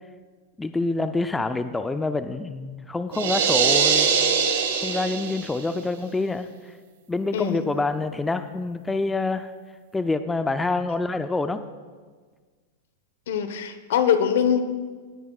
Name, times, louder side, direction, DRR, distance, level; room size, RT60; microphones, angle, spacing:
voice 1, 0.6-4.1 4.8-6.7 7.1-9.5 9.9-11.6, left 3 dB, 10° left, 10 dB, 0.4 m, -26 dB
sound 1, 3.1-5.6, right 6 dB, 80° right, 1.8 m, -22 dB
voice 2, 13.3-14.6, left 8 dB, 75° left, 10 dB, 1.0 m, -22 dB
18.0 x 9.8 x 2.4 m, 1.5 s
hypercardioid pair, 130°, 0 cm